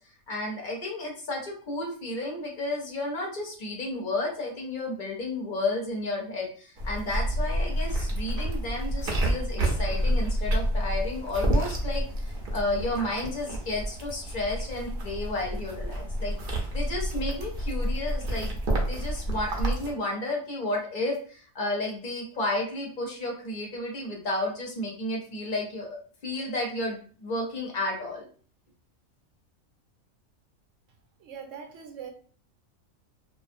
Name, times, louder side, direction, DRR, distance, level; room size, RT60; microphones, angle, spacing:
voice 1, 0.3-16.3 16.7-18.6 18.9-25.9 26.2-28.3, left 2 dB, 45° left, 0 dB, 0.7 m, -32 dB
sound 1, 6.8-19.9, right 1 dB, 55° right, 0.7 m, -29 dB
voice 2, 31.2-32.1, right 7 dB, 70° right, 3 dB, 0.9 m, -41 dB
2.4 x 2.4 x 2.5 m, 0.44 s
omnidirectional pair, 1.4 m